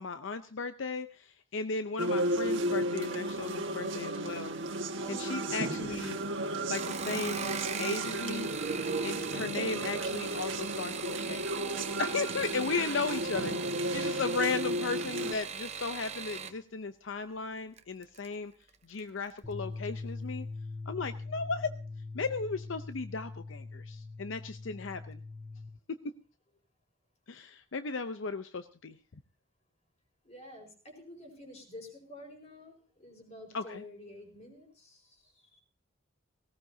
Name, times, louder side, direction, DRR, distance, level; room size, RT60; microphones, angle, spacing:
voice 1, 0.0-4.6 5.1-6.2 6.7-7.5 7.8-8.5 9.0-11.5 12.0-18.5 18.8-20.5 20.9-21.7 22.1-25.2 27.3-29.0 33.5-33.8, left 4 dB, 70° left, 10 dB, 0.7 m, -36 dB
sound 1, 2.0-15.3, right 1 dB, 65° right, 1.6 m, -34 dB
sound 2, 6.6-16.6 17.8-18.3 18.7-19.1 19.4-19.5, right 7 dB, 35° right, 0.9 m, -40 dB
sound 3, 19.4-25.7, left 3 dB, 5° left, 3.1 m, -42 dB
voice 2, 30.2-35.6, left 1 dB, 35° left, 2 dB, 4.8 m, -50 dB
18.5 x 17.5 x 2.7 m, 0.37 s
head